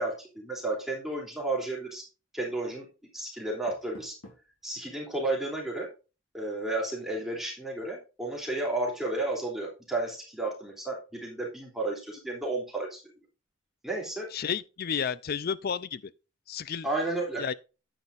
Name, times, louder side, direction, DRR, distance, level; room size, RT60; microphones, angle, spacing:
voice 1, 0.0-2.0 2.3-2.8 3.1-4.1 4.6-5.9 6.3-13.0 13.8-14.3 16.8-17.5, right 2 dB, ahead, 3.0 m, -32 dB
Door, 3.4-4.6, left 1 dB, 90° left, 3.3 m, -53 dB
voice 2, 14.3-16.0 16.5-16.9 17.4-17.5, left 7 dB, 45° left, 0.4 m, -31 dB
9.6 x 9.1 x 2.5 m
head